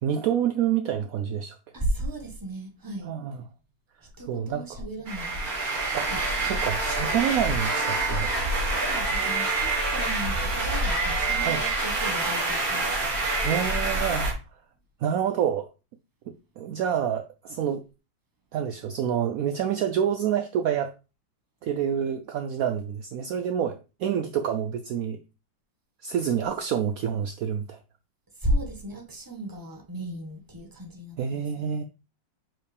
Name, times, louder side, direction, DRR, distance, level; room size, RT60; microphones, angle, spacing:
voice 1, 0.0-1.6 3.0-3.4 4.3-4.8 5.9-8.3 8.6-8.7 11.4-11.6 13.4-14.4 15.0-15.7 16.3-17.9 18.5-20.9 21.6-25.2 26.0-27.8 31.2-31.8, right 9 dB, 75° right, 0.8 m, -28 dB
voice 2, 1.7-3.1 4.2-5.5 6.1-6.2 6.5-6.6 8.8-12.9 28.4-31.7, right 1 dB, 15° right, 1.1 m, -34 dB
sound 1, 5.1-14.3, right 2 dB, 50° right, 2.5 m, -26 dB
7.4 x 4.7 x 3.3 m
omnidirectional pair, 2.0 m